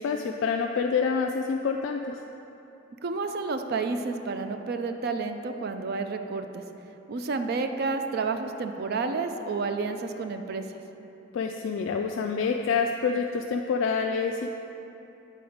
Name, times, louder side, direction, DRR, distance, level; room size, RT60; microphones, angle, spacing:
voice 1, 0.0-2.0 11.3-14.5, left 5 dB, 75° left, 3 dB, 0.3 m, -27 dB
voice 2, 3.0-6.6 7.1-10.7, right 4 dB, 55° right, 7 dB, 0.4 m, -30 dB
8.5 x 3.9 x 5.0 m, 2.9 s
head